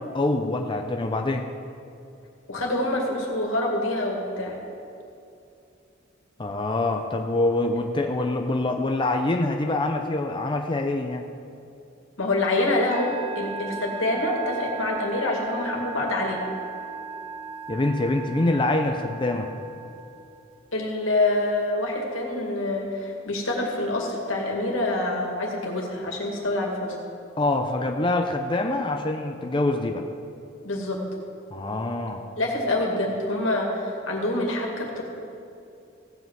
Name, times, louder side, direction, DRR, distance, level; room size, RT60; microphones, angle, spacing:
voice 1, 0.1-1.5 6.4-11.3 17.7-19.5 27.4-30.1 31.5-32.2, left 2 dB, 25° left, 4 dB, 0.6 m, -25 dB
voice 2, 2.5-4.6 12.2-16.4 20.7-27.0 30.6-31.0 32.3-35.0, left 2 dB, 80° left, 0 dB, 2.3 m, -26 dB
Musical instrument, 12.9-20.5, right 5 dB, 30° right, 0.7 m, -37 dB
16.5 x 5.5 x 7.6 m, 2.6 s
head